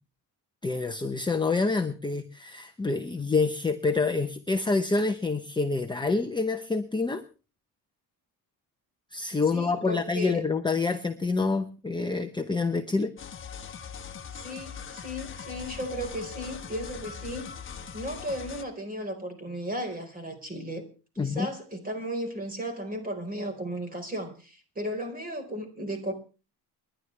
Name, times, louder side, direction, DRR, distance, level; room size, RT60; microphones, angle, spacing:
voice 1, 0.6-7.2 9.1-13.1 21.2-21.5, left 3 dB, 10° left, 6 dB, 0.9 m, -27 dB
voice 2, 9.5-10.4 14.3-17.5 17.9-20.8 21.1-26.1, equal, 20° right, 6 dB, 4.5 m, -35 dB
sound 1, 13.2-18.6, left 7 dB, 30° left, 1.4 m, -41 dB
29.5 x 11.5 x 3.3 m, 0.35 s
cardioid pair, 140°, 39 cm